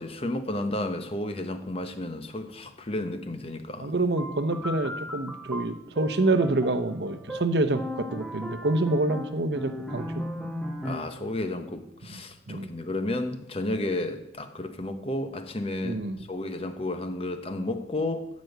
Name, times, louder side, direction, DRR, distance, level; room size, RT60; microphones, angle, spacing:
voice 1, 0.0-3.9 10.8-16.0 16.3-18.3, left 1 dB, 35° left, 8 dB, 1.0 m, -32 dB
voice 2, 3.8-10.2 12.1-12.2 12.5-12.7 15.8-16.2, right 2 dB, 75° right, 9 dB, 0.9 m, -27 dB
sound 1, 4.2-11.2, left 1 dB, ahead, 1.1 m, -37 dB
13.5 x 5.3 x 8.0 m, 0.80 s
head